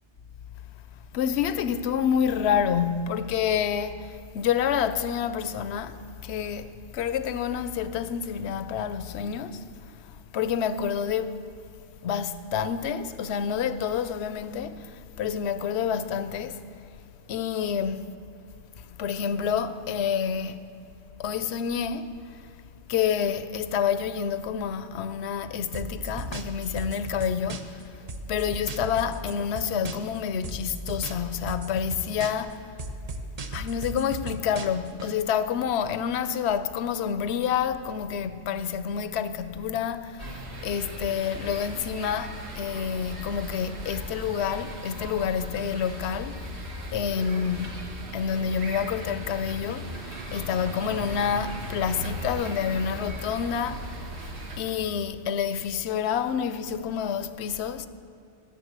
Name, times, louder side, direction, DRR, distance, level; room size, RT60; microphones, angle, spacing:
voice 1, 1.1-10.1 10.3-11.4 12.0-16.6 17.3-18.1 18.9-20.6 21.2-22.5 22.9-32.7 33.5-46.7 46.9-47.8 48.1-54.1 54.6-57.9, left 7 dB, 70° left, 0.8 m, -28 dB
sound 1, 25.7-27.8 28.1-30.2 30.4-32.5 32.8-35.1, right 2 dB, 40° right, 0.6 m, -36 dB
sound 2, 40.2-54.6, equal, 65° right, 1.6 m, -38 dB
12.0 x 6.7 x 8.0 m
omnidirectional pair, 1.2 m